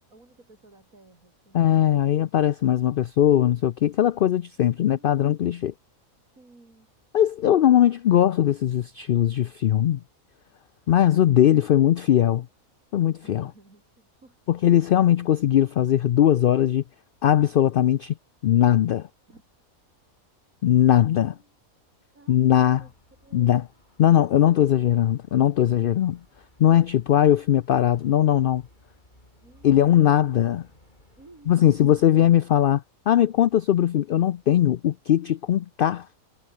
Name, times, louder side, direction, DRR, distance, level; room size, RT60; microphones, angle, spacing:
voice 1, 0.1-2.0 4.6-5.3 6.3-6.9 13.2-14.7 19.3-19.5 20.9-21.6 22.1-22.9 23.2-23.6 29.4-30.0 31.2-32.2, right 2 dB, 75° right, 5.0 m, -55 dB
voice 2, 1.5-5.7 7.1-10.0 10.9-12.5 12.9-13.5 14.5-16.8 17.2-18.1 18.4-19.1 20.6-21.3 22.3-22.8 23.3-23.6 24.0-26.2 26.6-28.6 29.6-30.7 31.5-36.1, left 11 dB, 85° left, 0.4 m, -20 dB
Traffic noise roadway noise, 22.6-32.4, left 1 dB, 35° left, 4.5 m, -59 dB
omnidirectional pair, 1.5 m